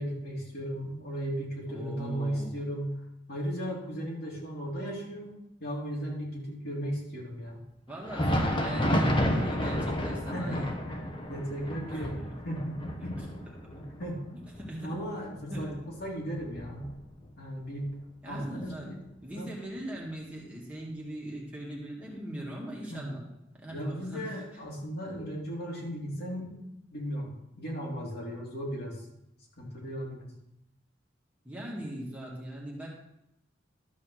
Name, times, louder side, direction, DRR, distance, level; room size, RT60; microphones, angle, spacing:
voice 1, 0.0-2.9 3.3-7.6 10.3-12.2 12.4-13.2 13.7-14.3 14.8-15.7 16.0-16.9 17.4-18.0 18.3-19.0 19.3-19.5 22.9-23.1 23.7-26.6 26.9-29.0 29.6-30.3, equal, 55° left, -3 dB, 3.3 m, -36 dB
voice 2, 1.7-2.6 7.9-10.7 11.9-12.4 14.6-14.9 15.5-15.7 18.2-18.9 19.2-23.2 23.6-24.4 31.4-32.9, right 1 dB, 10° right, -4 dB, 2.1 m, -40 dB
Thunder, 7.9-17.4 17.7-17.9 18.6-18.8 19.8-19.9, equal, 25° left, 1.1 m, -31 dB
12.5 x 5.3 x 6.6 m, 0.84 s
head